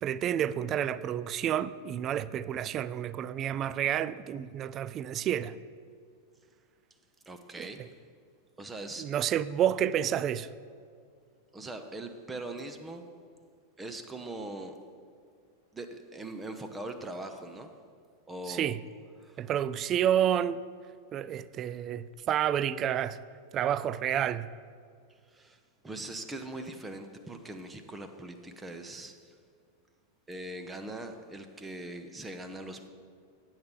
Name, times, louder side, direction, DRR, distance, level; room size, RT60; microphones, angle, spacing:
voice 1, 0.0-5.6 7.6-7.9 9.0-10.5 18.5-18.8 19.4-20.6 21.1-23.2 23.5-24.5, right 10 dB, 30° right, 0.3 m, -29 dB
voice 2, 7.3-7.8 8.6-9.1 11.5-13.1 13.8-14.7 15.7-17.7 18.3-18.7 19.2-19.5 25.3-25.6 25.8-29.3 30.3-32.9, right 2 dB, 10° right, 0.7 m, -41 dB
8.9 x 7.9 x 5.2 m
figure-of-eight pair, 90°, 0 cm